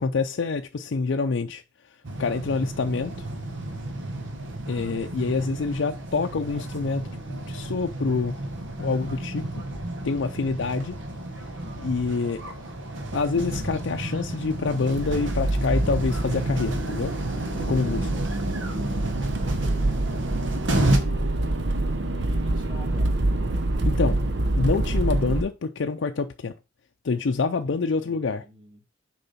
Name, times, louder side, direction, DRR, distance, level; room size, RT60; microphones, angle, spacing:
voice 1, 0.0-1.6 2.2-3.3 4.7-8.3 8.8-9.5 10.0-11.0 11.8-12.5 13.1-17.1 17.7-18.1 23.8-24.2 24.6-26.5 27.0-28.4, left 4 dB, 75° left, 0.5 m, -26 dB
sound 1, 2.0-21.0, right 1 dB, 80° right, 1.4 m, -32 dB
voice 2, 3.9-4.4 19.3-21.3 22.1-23.2 27.4-28.8, equal, 25° right, 2.7 m, -50 dB
Accelerating revving vroom, 14.9-25.4, right 2 dB, 60° right, 0.7 m, -26 dB
6.7 x 4.8 x 4.2 m
head